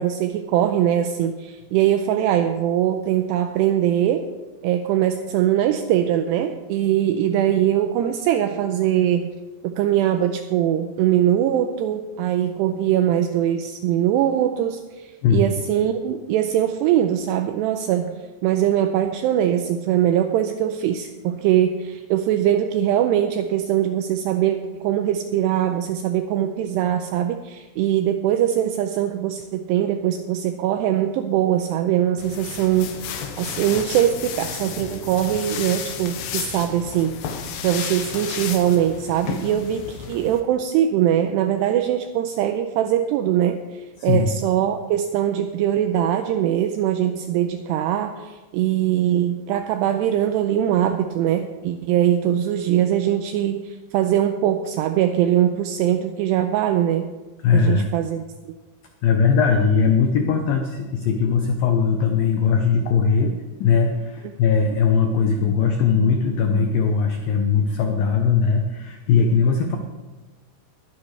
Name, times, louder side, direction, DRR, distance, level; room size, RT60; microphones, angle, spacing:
voice 1, 0.0-4.3 4.6-9.3 9.6-18.1 18.4-37.2 37.6-57.1 57.5-58.2, right 11 dB, 90° right, 7 dB, 2.4 m, -22 dB
sound 1, 32.2-40.4, left 7 dB, 75° left, 3.0 m, -32 dB
voice 2, 44.0-44.3 57.4-57.9 59.0-69.8, left 6 dB, 90° left, 4 dB, 2.0 m, -20 dB
21.5 x 10.0 x 3.3 m, 1.2 s
omnidirectional pair, 5.4 m